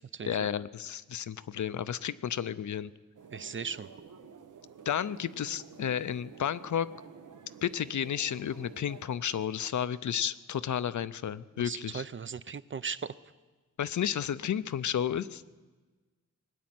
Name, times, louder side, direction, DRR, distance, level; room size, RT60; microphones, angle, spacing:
voice 1, 0.2-2.9 4.9-6.9 7.6-12.0 13.8-15.4, left 9 dB, 70° left, 15 dB, 0.5 m, -32 dB
sound 1, 3.1-9.1, right 6 dB, 85° right, 0.9 m, -51 dB
voice 2, 3.3-3.9 11.6-13.1, right 6 dB, 40° right, 15 dB, 0.5 m, -37 dB
20.0 x 9.4 x 7.7 m, 1.3 s
wide cardioid pair, 100°, 31 cm